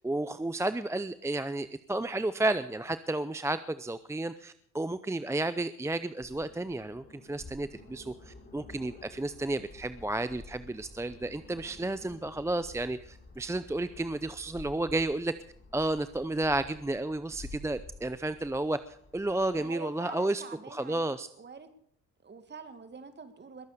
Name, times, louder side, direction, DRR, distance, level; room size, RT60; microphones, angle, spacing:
voice 1, 0.0-15.3 15.7-18.8 19.1-20.4 20.7-21.3, right 2 dB, 10° right, 13 dB, 0.6 m, -32 dB
sound 1, 6.2-19.6, left 2 dB, 35° left, 6.6 m, -51 dB
voice 2, 19.6-21.7 22.2-23.7, right 5 dB, 35° right, 9 dB, 2.4 m, -46 dB
21.5 x 8.2 x 6.8 m, 0.64 s
cardioid pair, 90°, 30 cm